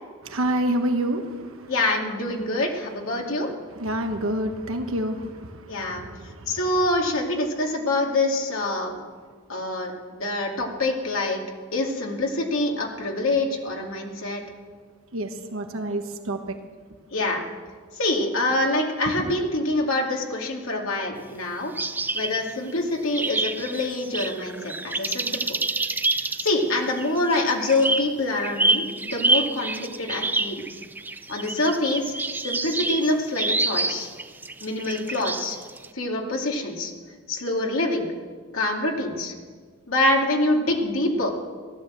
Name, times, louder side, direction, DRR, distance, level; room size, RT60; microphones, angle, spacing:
voice 1, 0.2-1.7 3.5-6.6 15.1-16.6, right 1 dB, 70° right, 6 dB, 1.3 m, -28 dB
voice 2, 1.7-3.5 5.7-6.0 6.5-8.9 9.5-11.4 11.7-14.4 17.1-17.4 17.9-21.7 22.1-25.4 26.4-30.6 31.3-32.1 32.4-34.1 34.6-35.6 35.9-36.9 37.3-38.1 38.5-39.3 39.9-41.3, left 2 dB, 70° left, 1 dB, 2.4 m, -25 dB
sound 1, 21.8-22.7 23.1-35.9, right 2 dB, 10° right, 0.4 m, -27 dB
16.5 x 11.5 x 7.6 m, 1.5 s
head